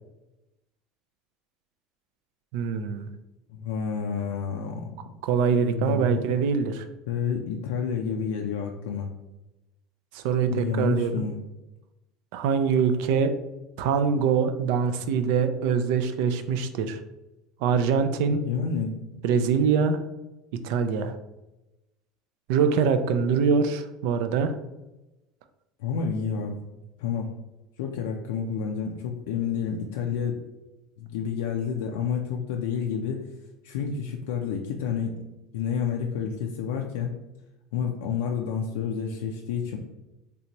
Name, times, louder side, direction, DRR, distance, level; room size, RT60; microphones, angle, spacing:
voice 1, 2.5-3.1 5.2-6.8 10.1-11.3 12.3-13.3 13.8-17.0 17.6-18.4 19.2-20.0 20.6-21.1 22.5-24.6, right 6 dB, 75° right, 9 dB, 0.3 m, -24 dB
voice 2, 3.5-5.1 5.6-6.2 7.1-9.1 10.5-11.4 18.3-19.2 25.8-26.5 27.0-27.3 27.8-30.4 31.0-33.3 33.6-35.1 35.5-37.1 37.7-39.8, left 6 dB, 85° left, 1 dB, 0.3 m, -29 dB
3.3 x 2.7 x 2.9 m, 0.99 s
supercardioid pair, 105°, 0 cm